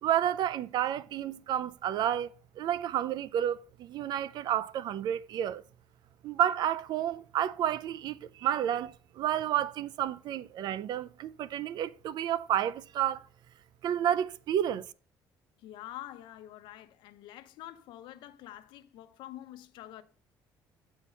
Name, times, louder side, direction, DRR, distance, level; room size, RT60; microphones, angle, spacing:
voice 1, 0.0-2.3 2.6-5.6 6.2-13.2 13.8-14.8, right 10 dB, 65° right, 0.4 m, -30 dB
voice 2, 15.6-20.0, left 13 dB, 80° left, 0.8 m, -46 dB
8.1 x 4.4 x 5.6 m
cardioid pair, 115°, 8 cm